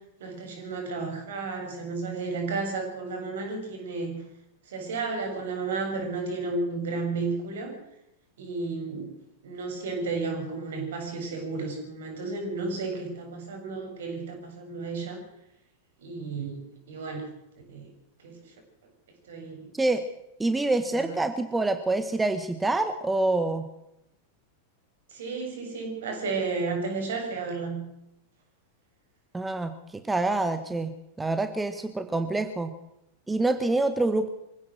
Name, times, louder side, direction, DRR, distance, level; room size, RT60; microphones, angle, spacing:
voice 1, 0.2-4.2 4.7-7.8 8.4-9.1 9.4-15.2 16.0-17.3 17.7-17.9 18.2-18.4 19.3-19.7 20.9-21.1 25.1-27.8, right 3 dB, 60° right, 3 dB, 7.1 m, -32 dB
voice 2, 20.4-23.7 29.3-32.7 33.3-34.3, right 2 dB, 10° right, 9 dB, 1.4 m, -26 dB
24.5 x 16.5 x 6.5 m, 0.85 s
figure-of-eight pair, 90°, 0 cm